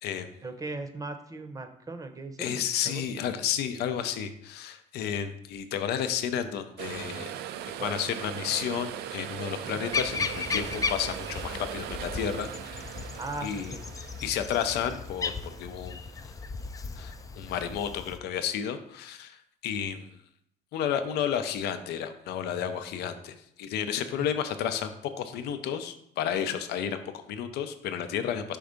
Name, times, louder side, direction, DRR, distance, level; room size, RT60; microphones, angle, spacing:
voice 1, 0.4-3.2 7.8-8.0 9.6-9.9 13.2-13.8 24.1-24.3, right 3 dB, 20° right, 6 dB, 0.7 m, -39 dB
voice 2, 2.4-7.3 7.8-13.0 13.4-13.8 14.2-16.0 17.0-19.4 19.6-20.1 20.7-28.6, left 8 dB, 75° left, 9 dB, 0.6 m, -32 dB
sound 1, 6.8-17.1 17.4-17.5, right 10 dB, 75° right, 0.4 m, -40 dB
sound 2, 9.9-18.2, left 5 dB, 20° left, 0.3 m, -36 dB
5.4 x 3.4 x 5.0 m, 0.71 s
cardioid pair, 110°, 17 cm